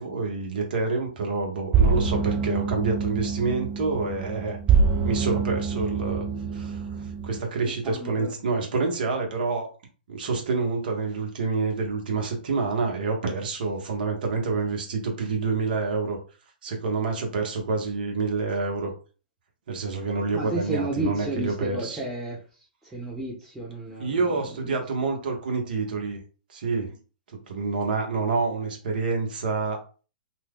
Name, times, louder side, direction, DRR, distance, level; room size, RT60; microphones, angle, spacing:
voice 1, 0.0-4.6 5.0-6.3 6.5-9.7 10.1-16.2 16.6-18.9 19.7-22.0 24.0-26.2 26.5-26.9 27.3-29.8, right 4 dB, 65° right, 2 dB, 1.1 m, -27 dB
sound 1, 1.7-7.4, right 5 dB, 20° right, 0.4 m, -25 dB
voice 2, 7.6-8.3 20.3-22.4 22.8-24.8, right 2 dB, 5° right, -6 dB, 0.9 m, -32 dB
2.7 x 2.3 x 3.5 m, 0.36 s
hypercardioid pair, 130°, 5 cm